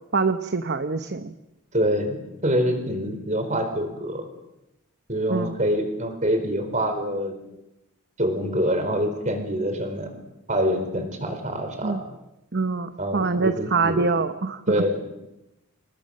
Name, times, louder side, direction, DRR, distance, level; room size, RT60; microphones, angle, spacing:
voice 1, 0.1-1.3 5.3-5.6 11.8-12.0 12.5-14.6, right 4 dB, 50° right, 9 dB, 0.9 m, -24 dB
voice 2, 1.7-2.2 2.4-4.3 5.1-7.3 8.2-10.1 10.5-12.0 13.0-14.1 14.7-15.0, equal, 35° right, 6 dB, 4.4 m, -25 dB
28.5 x 20.5 x 6.6 m, 0.92 s
head